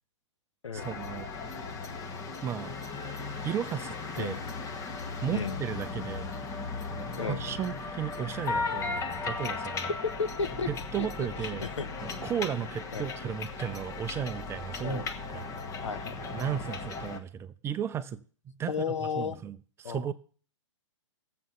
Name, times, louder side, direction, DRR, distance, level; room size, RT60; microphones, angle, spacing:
voice 1, 0.7-1.3 2.4-2.7 3.4-4.4 5.2-6.4 6.9-9.9 10.7-11.7 12.0-15.1 15.3-15.4 16.3-18.2 18.5-20.1, right 8 dB, 15° right, 13 dB, 0.6 m, -35 dB
sound 1, 0.8-17.2, left 4 dB, 20° left, 1.3 m, -37 dB
voice 2, 9.9-10.7 11.0-11.3 11.6-11.9 12.9-13.1 14.8-15.1 15.8-16.3 18.7-19.4 19.8-20.1, left 5 dB, 75° left, 12 dB, 1.1 m, -33 dB
15.0 x 7.7 x 5.6 m, 0.43 s
figure-of-eight pair, 120°, 16 cm